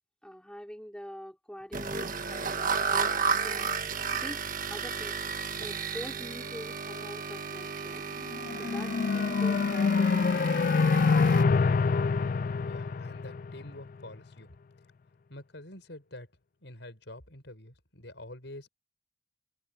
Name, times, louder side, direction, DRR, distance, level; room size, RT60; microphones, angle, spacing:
voice 1, 0.2-3.1 3.4-3.7 4.1-4.4 4.7-8.1 8.5-10.5, equal, 5° left, 5.1 m, -44 dB
sound 1, 1.7-11.4, right 5 dB, 45° right, 1.5 m, -33 dB
sound 2, 8.3-13.8, left 4 dB, 45° left, 0.3 m, -26 dB
voice 2, 12.6-14.5 15.3-16.3 16.6-18.7, left 1 dB, 65° left, 6.0 m, -47 dB
head